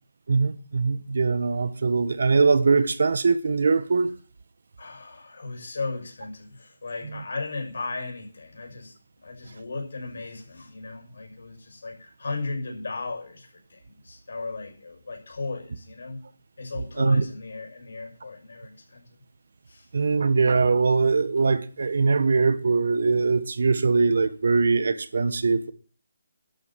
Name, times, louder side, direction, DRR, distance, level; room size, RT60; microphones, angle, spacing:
voice 1, 0.3-4.1 7.1-7.2 17.0-17.2 19.9-25.7, right 4 dB, 60° right, 1.3 m, -22 dB
voice 2, 4.8-8.9 9.2-16.2 16.6-19.0 19.7-19.9, left 3 dB, 65° left, 6.0 m, -36 dB
12.0 x 8.3 x 7.4 m
hypercardioid pair, 170°, 0 cm